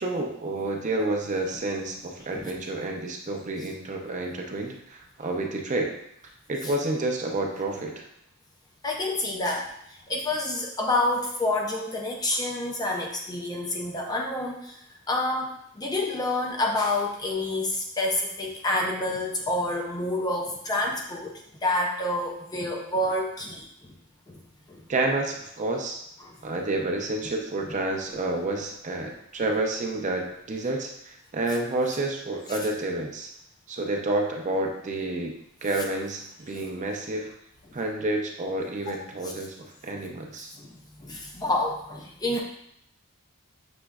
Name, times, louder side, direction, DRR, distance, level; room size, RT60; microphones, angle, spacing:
voice 1, 0.0-5.9 6.5-8.1 24.9-26.0 26.4-33.3 33.7-35.3 35.6-37.3 37.7-39.6 39.8-40.5, right 2 dB, 35° right, 1 dB, 0.5 m, -29 dB
voice 2, 8.8-14.8 15.1-21.3 21.6-23.9 24.3-24.4 24.7-24.8 26.2-26.4 27.7-27.8 29.0-29.1 32.5-32.6 38.9-39.0 39.2-39.3 40.6-42.4, left 2 dB, 20° left, 0 dB, 0.4 m, -28 dB
6.0 x 3.1 x 2.3 m, 0.75 s
head